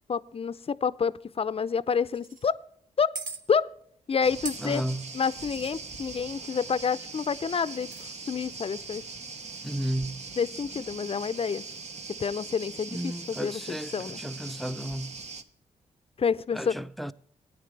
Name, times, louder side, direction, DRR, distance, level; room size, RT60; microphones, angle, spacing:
voice 1, 0.1-2.6 3.0-3.1 3.5-3.7 4.1-4.8 5.1-9.0 10.4-11.6 12.2-14.2 16.2-16.8, left 6 dB, 40° left, 0.6 m, -28 dB
sound 1, 2.1-2.5 3.1-3.4 4.4-5.7 7.7-8.0, right 4 dB, 70° right, 1.3 m, -39 dB
sound 2, 4.2-15.4, right 4 dB, 50° right, 1.1 m, -41 dB
voice 2, 4.6-5.1 9.6-10.2 12.9-15.2 16.5-17.1, right 1 dB, ahead, 0.7 m, -33 dB
16.5 x 9.4 x 3.3 m
supercardioid pair, 45°, 14 cm